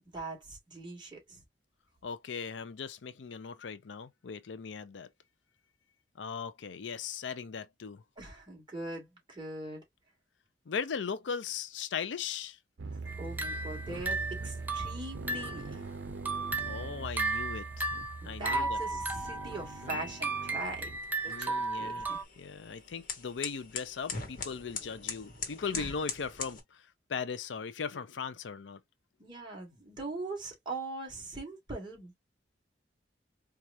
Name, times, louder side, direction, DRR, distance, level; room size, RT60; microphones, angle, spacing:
voice 1, 0.1-1.4 8.2-9.8 13.2-15.8 18.2-20.9 21.2-22.2 25.7-25.9 29.2-32.1, right 2 dB, 25° right, 2.2 m, -41 dB
voice 2, 2.0-5.1 6.2-8.0 10.7-12.6 16.6-17.9 18.2-19.0 19.8-20.0 21.3-22.1 22.4-28.8, left 6 dB, 85° left, 0.5 m, -38 dB
sound 1, 12.8-21.0, right 3 dB, 90° right, 0.6 m, -42 dB
sound 2, 13.1-15.7 16.1-22.2, right 3 dB, 10° right, 0.6 m, -35 dB
sound 3, 19.8-26.6, left 5 dB, 50° left, 1.2 m, -42 dB
4.6 x 2.4 x 2.7 m
head